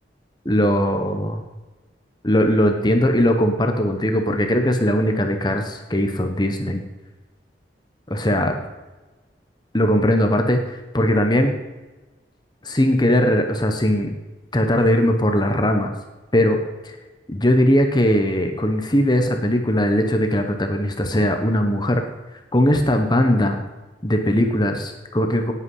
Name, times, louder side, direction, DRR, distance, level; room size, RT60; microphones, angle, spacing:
voice 1, 0.4-1.4 2.2-6.8 8.1-8.6 9.7-11.5 12.6-14.1 14.5-15.9 16.3-16.6 16.8-17.0 17.3-22.0 22.3-23.6 24.0-25.5, equal, 25° left, 5 dB, 1.2 m, -19 dB
18.5 x 8.6 x 5.6 m, 1.2 s
head